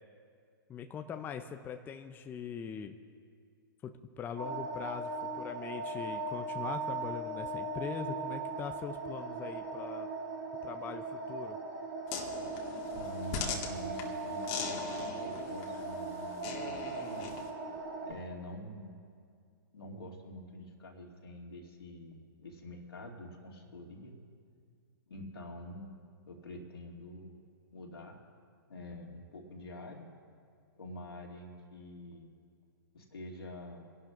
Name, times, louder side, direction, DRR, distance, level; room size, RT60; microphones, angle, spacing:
voice 1, 0.7-3.0 3.8-10.1 10.6-11.6, left 7 dB, 15° left, 7 dB, 0.5 m, -42 dB
sound 1, 4.4-18.1, right 3 dB, 70° right, 3.2 m, -39 dB
sound 2, 12.1-17.5, left 5 dB, 35° left, 1.8 m, -41 dB
voice 2, 12.9-17.3 18.0-19.0 19.7-24.1 25.1-28.2 28.7-30.1 30.8-32.3 32.9-33.9, left 1 dB, 90° left, 0 dB, 2.6 m, -47 dB
29.0 x 11.5 x 2.6 m, 2.2 s
hypercardioid pair, 130°, 12 cm